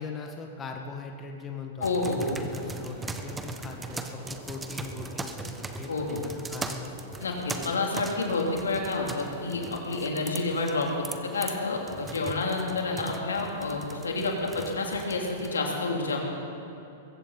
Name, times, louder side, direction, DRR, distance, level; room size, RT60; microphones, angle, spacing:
voice 1, 0.0-6.9 7.4-7.5, left 4 dB, 20° left, 3 dB, 1.5 m, -40 dB
voice 2, 1.8-2.4 5.9-6.2 7.2-11.0 11.3-16.2, left 3 dB, 80° left, 0 dB, 3.0 m, -29 dB
sound 1, 1.8-15.6, right 3 dB, 10° right, 1.1 m, -40 dB
Gunshot gunfire, 1.9-9.8, right 2 dB, 40° right, 4.2 m, -47 dB
22.0 x 16.0 x 4.1 m, 2.9 s
hypercardioid pair, 105°, 0 cm